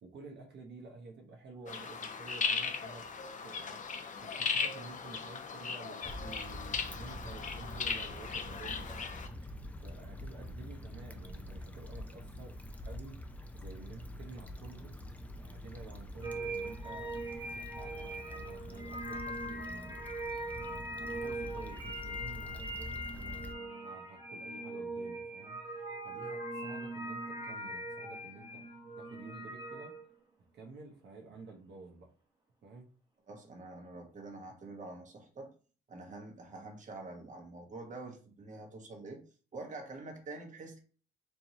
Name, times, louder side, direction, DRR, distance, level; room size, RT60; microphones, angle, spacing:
voice 1, 0.0-3.1 3.4-12.6 12.8-14.9 15.4-20.6 20.9-25.6 26.0-29.9 30.5-32.1 32.6-32.9, right 3 dB, 60° right, 0 dB, 1.1 m, -51 dB
sound 1, 1.7-9.3, left 5 dB, 40° left, 0.7 m, -37 dB
Stream / Traffic noise roadway noise / Trickle dribble, 6.0-23.5, left 1 dB, 5° left, 0.5 m, -46 dB
sound 2, 16.2-30.0, right 1 dB, 20° right, 1.4 m, -41 dB
voice 2, 33.3-35.5 35.9-39.2 39.5-40.8, right 2 dB, 40° right, 3 dB, 1.2 m, -46 dB
4.5 x 3.0 x 2.8 m, 0.39 s
cardioid pair, 90°, 20 cm